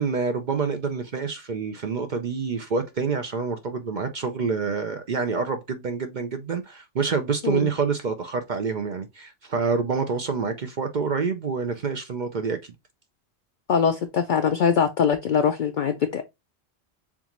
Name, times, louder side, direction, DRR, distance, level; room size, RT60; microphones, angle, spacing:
voice 1, 0.0-12.6, right 5 dB, 50° right, 0.7 m, -27 dB
voice 2, 13.7-16.2, left 7 dB, 55° left, 0.6 m, -22 dB
7.1 x 2.5 x 2.9 m
omnidirectional pair, 1.1 m